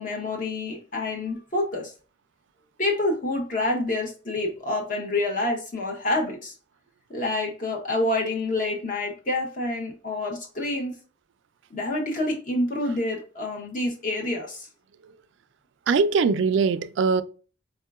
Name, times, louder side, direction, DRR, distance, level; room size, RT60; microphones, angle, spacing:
voice 1, 0.0-1.9 2.8-6.5 7.1-11.0 11.7-14.7, left 2 dB, 45° left, 1.1 m, -27 dB
voice 2, 15.9-17.2, right 5 dB, 70° right, 0.3 m, -21 dB
4.4 x 2.7 x 2.3 m
head